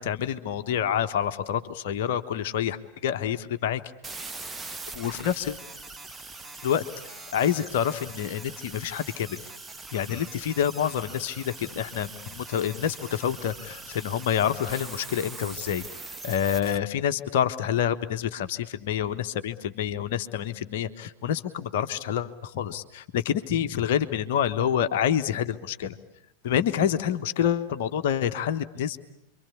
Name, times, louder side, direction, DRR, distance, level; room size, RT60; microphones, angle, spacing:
voice 1, 0.0-3.8 4.9-5.6 6.6-9.4 9.9-15.8 16.2-26.0 26.4-29.0, left 9 dB, 50° left, 8 dB, 1.2 m, -27 dB
sound 1, 4.0-16.8, right 3 dB, 10° right, 1.1 m, -42 dB
28.5 x 24.0 x 8.4 m, 0.81 s
figure-of-eight pair, 90°, 0 cm